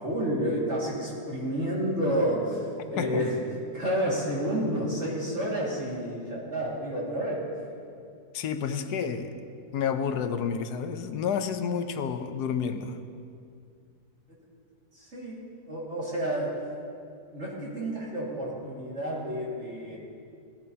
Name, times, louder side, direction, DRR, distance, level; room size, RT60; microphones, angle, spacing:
voice 1, 0.0-3.3 3.7-7.4 14.9-16.5 17.3-20.0, equal, 45° right, -6 dB, 2.3 m, -30 dB
voice 2, 8.3-9.3 9.7-13.0, left 7 dB, 80° left, 8 dB, 1.3 m, -30 dB
16.5 x 14.5 x 2.8 m, 2.3 s
omnidirectional pair, 1.7 m